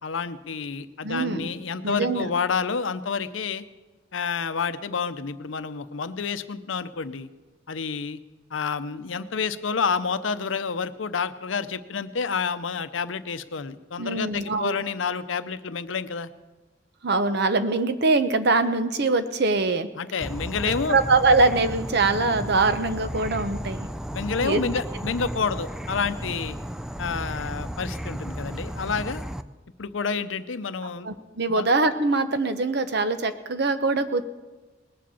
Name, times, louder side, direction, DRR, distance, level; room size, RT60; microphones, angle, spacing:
voice 1, 0.0-3.6 4.1-7.3 7.7-8.2 8.5-16.3 20.0-21.0 24.1-26.6 27.0-29.2 29.8-31.1 31.5-31.7, left 5 dB, 85° left, 12 dB, 0.7 m, -29 dB
voice 2, 1.0-1.5 1.8-2.3 14.0-14.8 17.0-19.9 20.7-23.9 24.4-24.6 31.0-34.2, right 3 dB, 60° right, 10 dB, 0.9 m, -23 dB
Insect / Frog, 20.2-29.4, equal, 5° right, 0.4 m, -34 dB
20.0 x 7.6 x 7.0 m, 1.2 s
head